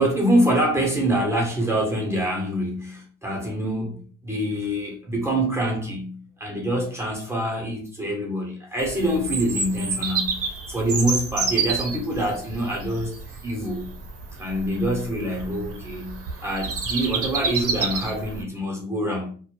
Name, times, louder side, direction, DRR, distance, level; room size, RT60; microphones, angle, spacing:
voice 1, 0.0-13.9 14.3-19.3, right 1 dB, 10° right, 0.8 m, -25 dB
Bird vocalization bird call bird song, 8.8-18.4, right 4 dB, 50° right, 0.7 m, -29 dB
2.2 x 2.0 x 3.0 m
supercardioid pair, 70°, 29 cm